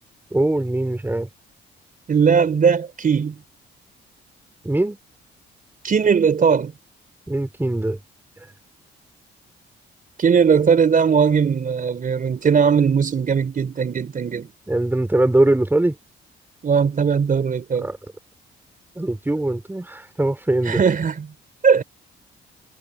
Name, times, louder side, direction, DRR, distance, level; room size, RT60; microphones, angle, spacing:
voice 1, 0.3-1.3 4.6-5.0 7.3-8.0 14.7-16.0 17.8-18.0 19.0-20.8, right 1 dB, 10° right, 3.6 m, -21 dB
voice 2, 2.1-3.4 5.8-6.7 10.2-14.5 16.6-17.9 20.7-21.3 21.6-21.8, right 6 dB, 45° right, 3.8 m, -18 dB
cardioid pair, 90°, 20 cm